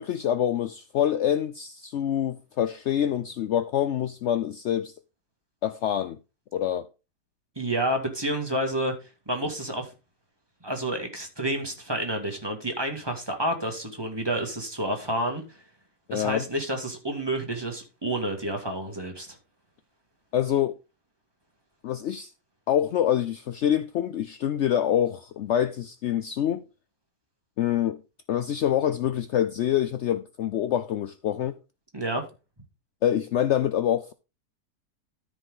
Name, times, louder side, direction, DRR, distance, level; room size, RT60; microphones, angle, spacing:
voice 1, 0.0-4.9 5.6-6.2 6.5-6.9 16.1-16.4 20.3-20.8 21.8-22.3 22.7-26.6 27.6-28.0 28.3-31.5 33.0-34.1, left 10 dB, 75° left, 0.6 m, -26 dB
voice 2, 7.6-9.9 10.6-15.6 16.1-19.4 31.9-32.2, right 1 dB, 15° right, 2.1 m, -29 dB
13.5 x 5.1 x 3.8 m
omnidirectional pair, 1.8 m